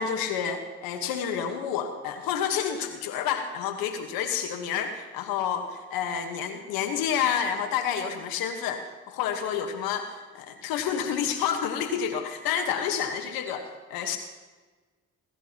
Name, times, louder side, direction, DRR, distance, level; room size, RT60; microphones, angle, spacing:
voice 1, 0.0-14.2, left 8 dB, 85° left, 6 dB, 1.3 m, -29 dB
27.5 x 14.0 x 2.9 m, 1.3 s
hypercardioid pair, 45°, 35 cm